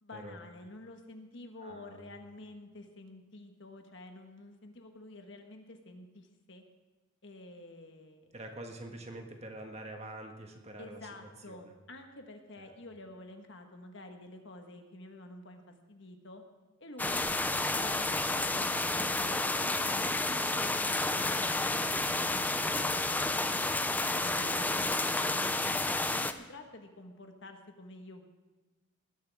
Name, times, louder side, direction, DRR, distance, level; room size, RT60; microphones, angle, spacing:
voice 1, 0.0-6.6 7.2-8.3 10.8-15.6 15.9-16.4 16.8-17.3 17.7-23.4 24.2-25.6 26.1-28.2, left 2 dB, 60° left, 4 dB, 1.4 m, -49 dB
voice 2, 1.6-2.1 8.3-11.1 11.5-11.7 12.6-12.7, right 1 dB, 30° right, 3 dB, 1.5 m, -46 dB
sound 1, 17.0-26.3, left 2 dB, 10° left, 0.4 m, -30 dB
20.0 x 11.5 x 3.5 m, 1.2 s
head